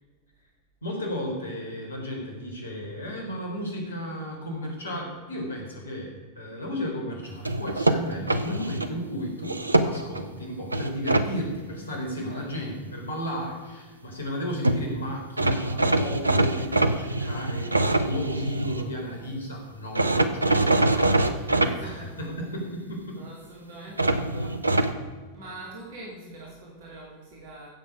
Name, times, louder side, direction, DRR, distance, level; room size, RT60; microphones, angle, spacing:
voice 1, 0.8-23.2 23.8-23.9, equal, 70° left, 1 dB, 3.7 m, -34 dB
sound 1, 7.5-8.9 9.4-10.2 10.7-11.3 14.4-14.5 14.6-14.8 15.4-18.9 20.0-21.7 24.0-24.9, right 2 dB, 80° right, 0.8 m, -23 dB
voice 2, 18.8-19.4 21.5-22.3 23.1-27.7, right 2 dB, 55° right, -3 dB, 3.0 m, -44 dB
16.0 x 7.8 x 4.9 m, 1.4 s
figure-of-eight pair, 90°, 0 cm